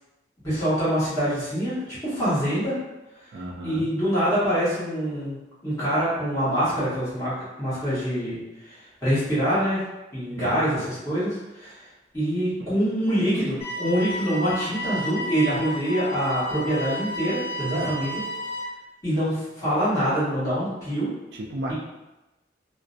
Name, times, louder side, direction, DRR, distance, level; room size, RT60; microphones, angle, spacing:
voice 1, 0.4-2.8 3.6-5.4 5.6-7.3 7.6-8.4 8.7-9.8 10.1-11.8 12.1-18.2 19.0-21.1, equal, 20° left, -12 dB, 1.0 m, -25 dB
voice 2, 3.3-3.9 10.4-10.8 12.6-12.7 17.6-17.9 21.3-21.7, right 1 dB, 65° right, -1 dB, 0.3 m, -33 dB
sound 1, 13.6-18.6, equal, 35° left, 0.7 m, -32 dB
2.4 x 2.0 x 2.5 m, 1.0 s
head